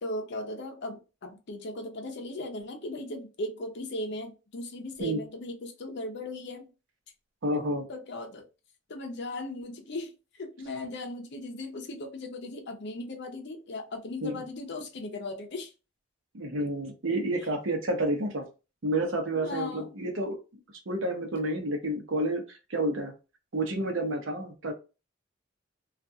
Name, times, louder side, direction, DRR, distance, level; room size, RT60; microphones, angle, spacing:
voice 1, 0.0-6.7 7.9-8.5 8.9-15.7 19.4-19.9, left 2 dB, 60° left, 0.6 m, -37 dB
voice 2, 7.4-7.8 14.2-14.4 16.3-18.5 18.8-20.4 20.9-23.1 23.5-24.7, right 1 dB, 75° right, 0.8 m, -30 dB
2.4 x 2.3 x 2.6 m
head